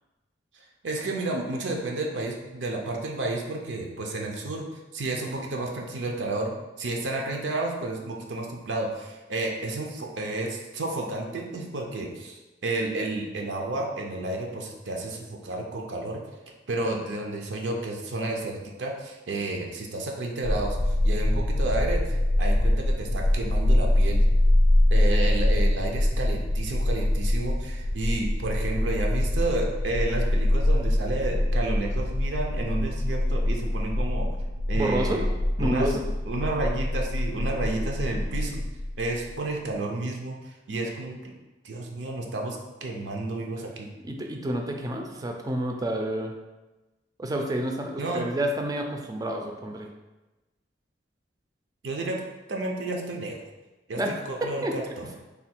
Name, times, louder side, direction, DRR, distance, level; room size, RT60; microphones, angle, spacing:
voice 1, 0.8-4.7 4.9-16.2 16.7-24.2 24.9-34.4 34.7-35.2 35.6-35.9 36.3-38.7 39.0-41.3 41.6-43.9 48.0-48.2 51.8-52.2 52.5-53.4 53.9-54.0 54.3-54.8, right 2 dB, 80° right, 0 dB, 0.5 m, -31 dB
sound 1, 20.4-39.3, left 1 dB, 65° left, 0.5 m, -24 dB
voice 2, 34.7-35.2 35.6-36.0 44.0-46.3 47.2-49.9 54.0-54.2 54.4-54.8, right 1 dB, 20° right, 3 dB, 0.4 m, -29 dB
3.4 x 2.3 x 4.3 m, 1.1 s
head